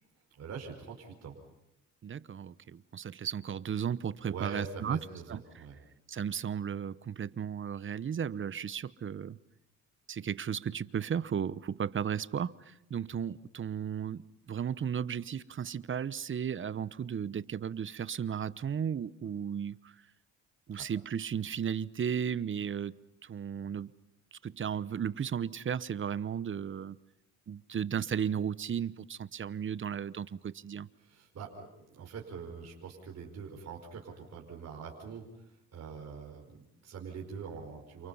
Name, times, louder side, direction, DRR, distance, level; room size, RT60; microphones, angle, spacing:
voice 1, 0.3-1.4 4.2-5.8 20.7-20.8 31.0-31.7 31.9-38.1, right 6 dB, 60° right, 5.1 m, -44 dB
voice 2, 2.0-5.0 5.3-5.4 6.1-9.4 10.1-14.2 14.5-19.9 20.7-23.0 23.2-23.9 24.3-27.0 27.5-30.9, right 8 dB, 40° right, 0.9 m, -35 dB
29.5 x 28.5 x 5.6 m
cardioid pair, 90°, 30 cm